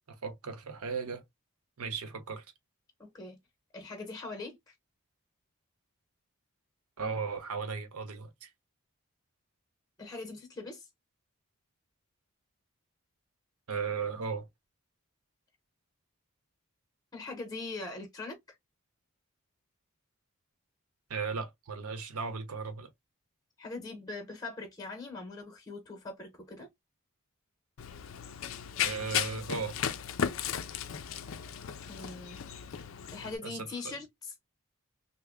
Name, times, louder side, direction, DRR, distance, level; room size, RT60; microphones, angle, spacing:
voice 1, 0.1-1.2 1.8-2.4 7.0-8.5 13.7-14.5 21.1-22.9 28.8-29.8 33.2-34.0, right 5 dB, 85° right, 0.8 m, -36 dB
voice 2, 3.0-3.4 3.7-4.7 10.0-10.9 17.1-18.6 23.6-26.7 31.8-32.4 33.1-34.3, left 3 dB, 15° left, 0.8 m, -42 dB
Run, 27.8-33.4, left 8 dB, 65° left, 0.4 m, -35 dB
3.3 x 2.1 x 3.5 m
head